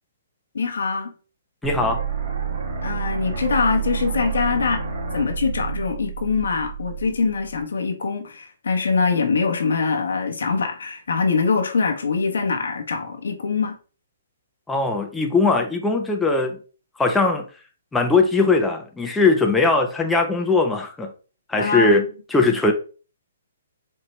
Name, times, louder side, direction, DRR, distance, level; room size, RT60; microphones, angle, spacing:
voice 1, 0.5-1.1 2.8-4.8 5.1-13.8 21.5-22.0, left 4 dB, 80° left, 1.0 m, -23 dB
voice 2, 1.6-2.0 14.7-16.6 17.0-17.4 17.9-21.1 21.5-22.0 22.3-22.7, left 3 dB, 5° left, 0.6 m, -20 dB
sound 1, 1.6-7.6, right 6 dB, 65° right, 1.7 m, -29 dB
4.4 x 2.8 x 3.1 m
hypercardioid pair, 145°, 0 cm